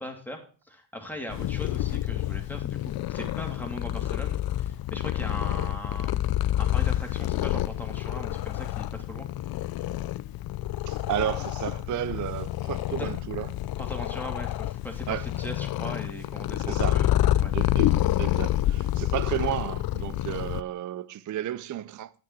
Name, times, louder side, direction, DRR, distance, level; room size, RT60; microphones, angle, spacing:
voice 1, 0.0-6.3 6.6-9.3 13.0-13.1 13.8-17.5, left 1 dB, 5° left, 3.0 m, -39 dB
Purr, 1.3-20.6, left 14 dB, 50° left, 0.6 m, -28 dB
voice 2, 10.9-13.5 15.1-15.3 16.7-17.0 17.5-22.1, right 12 dB, 40° right, 0.5 m, -32 dB
9.9 x 8.8 x 4.4 m
cardioid pair, 85°, 47 cm